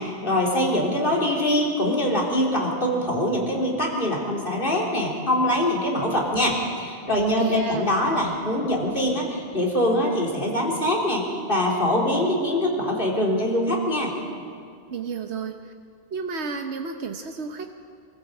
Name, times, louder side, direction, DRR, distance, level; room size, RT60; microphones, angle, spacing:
voice 1, 0.0-14.2, left 1 dB, 55° left, -2 dB, 3.7 m, -23 dB
voice 2, 7.2-7.9 14.9-15.7 16.1-17.7, right 5 dB, 85° right, 4 dB, 1.3 m, -32 dB
25.0 x 15.0 x 7.9 m, 2.3 s
omnidirectional pair, 1.1 m